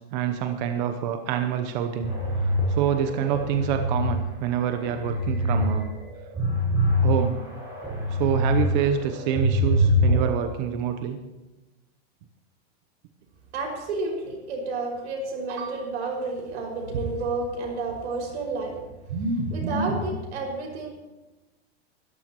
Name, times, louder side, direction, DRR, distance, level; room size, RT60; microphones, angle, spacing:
voice 1, 0.0-2.1 2.4-5.9 7.0-7.4 8.1-11.2, right 8 dB, 40° right, 7 dB, 0.8 m, -26 dB
sound 1, 2.0-4.1 4.6-5.6 6.0-8.6 9.0-10.4, left 1 dB, 10° right, 5.0 m, -24 dB
voice 2, 13.5-18.8 19.1-20.9, right 3 dB, 85° right, 0 dB, 5.8 m, -29 dB
22.5 x 13.5 x 3.0 m, 1.1 s
supercardioid pair, 170°, 33 cm